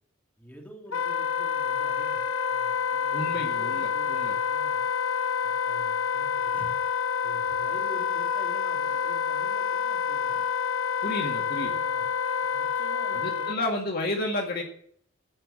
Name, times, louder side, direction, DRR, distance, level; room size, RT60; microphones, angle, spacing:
voice 1, 0.4-4.9 5.4-6.7 7.2-10.4 11.8-12.1 12.4-13.6, equal, 5° left, -2 dB, 3.2 m, -48 dB
Wind instrument woodwind instrument, 0.9-13.6, left 7 dB, 85° left, 0.9 m, -28 dB
voice 2, 3.1-4.3 11.0-11.8 13.1-14.6, left 1 dB, 45° left, 1 dB, 2.0 m, -31 dB
16.0 x 5.8 x 8.7 m, 0.64 s
head